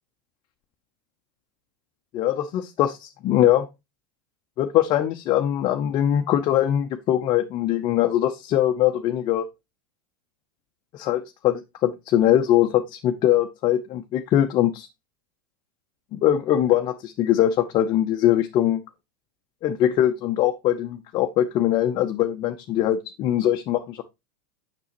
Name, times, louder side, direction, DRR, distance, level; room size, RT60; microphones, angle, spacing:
voice 1, 2.1-3.7 4.6-9.5 10.9-14.9 16.1-18.8 19.6-24.0, left 11 dB, 40° left, 0.6 m, -22 dB
6.9 x 6.1 x 2.9 m
hypercardioid pair, 105°, 11 cm